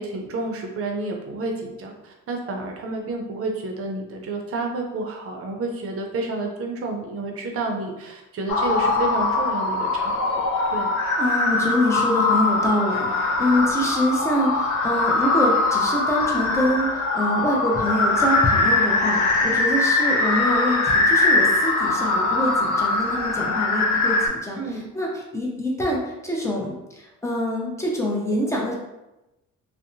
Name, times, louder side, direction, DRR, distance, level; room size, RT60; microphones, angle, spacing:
voice 1, 0.0-10.3 10.7-10.9 24.6-24.9, right 2 dB, 50° right, 2 dB, 0.6 m, -30 dB
sound 1, 8.5-24.3, left 3 dB, 75° left, 0.6 m, -22 dB
voice 2, 11.2-28.7, left 1 dB, 10° left, -2 dB, 0.6 m, -25 dB
2.7 x 2.1 x 2.6 m, 0.97 s
cardioid pair, 90°, 30 cm